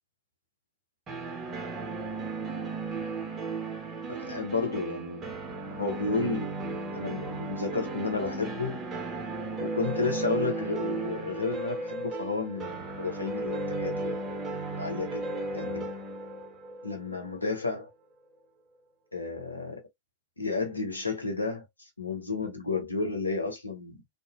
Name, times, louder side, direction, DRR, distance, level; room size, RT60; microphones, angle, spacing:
sound 1, 1.1-17.8, right 3 dB, 25° right, 0.7 m, -35 dB
voice 1, 4.1-5.3 5.7-6.5 6.9-8.8 9.6-14.1 14.8-15.2 15.5-15.8 16.8-17.9 19.1-19.8 20.4-21.7 22.0-24.0, left 3 dB, 80° left, 0.8 m, -32 dB
2.5 x 2.2 x 2.3 m
figure-of-eight pair, 90°, 0 cm